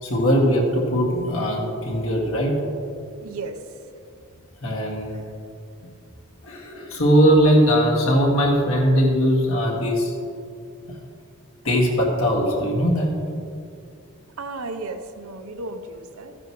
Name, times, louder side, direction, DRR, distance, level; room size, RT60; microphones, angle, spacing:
voice 1, 0.0-2.6 4.6-5.2 6.4-10.1 11.6-13.1, equal, 70° left, -3 dB, 2.1 m, -20 dB
voice 2, 3.2-3.6 14.4-16.4, right 3 dB, 80° right, 8 dB, 0.8 m, -34 dB
14.0 x 9.7 x 3.1 m, 2.4 s
head